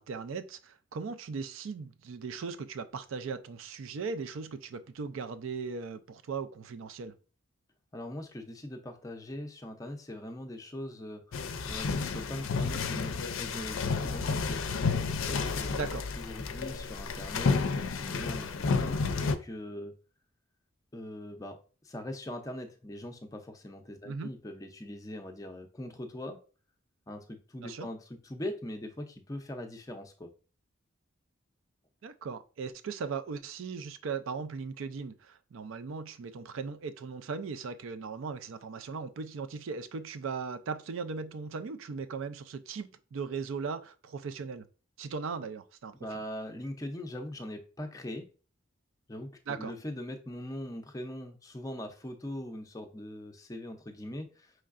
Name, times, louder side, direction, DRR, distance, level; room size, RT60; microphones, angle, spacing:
voice 1, 0.0-7.1 15.7-16.1 24.0-24.3 27.6-27.9 32.0-44.7 45.0-46.2 49.5-49.7, right 5 dB, 75° right, 0.4 m, -38 dB
voice 2, 7.9-11.2 11.7-14.6 15.3-15.7 16.2-19.9 20.9-21.6 21.8-26.4 27.1-30.3 46.0-48.3 49.1-49.3 49.6-54.5, left 1 dB, 15° left, 0.5 m, -41 dB
sound 1, 11.3-19.4, left 4 dB, 75° left, 0.4 m, -31 dB
5.5 x 3.2 x 2.4 m
head